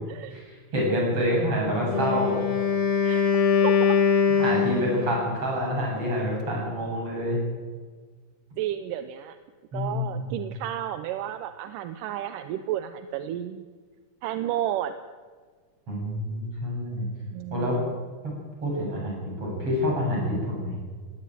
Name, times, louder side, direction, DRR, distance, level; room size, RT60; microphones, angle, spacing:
voice 1, 0.3-2.4 4.3-7.4 9.7-10.3 15.9-17.1 17.5-17.8 18.2-18.3 18.6-20.8, equal, 40° right, -2 dB, 8.5 m, -27 dB
voice 2, 1.3-1.6 3.0-3.3 3.6-4.0 8.6-9.4 9.7-13.6 14.2-15.0 17.3-17.9, right 12 dB, 80° right, 10 dB, 2.4 m, -32 dB
Wind instrument woodwind instrument, 1.8-5.3, left 6 dB, 45° left, 2.5 m, -22 dB
18.0 x 17.0 x 9.3 m, 1.5 s
omnidirectional pair, 3.8 m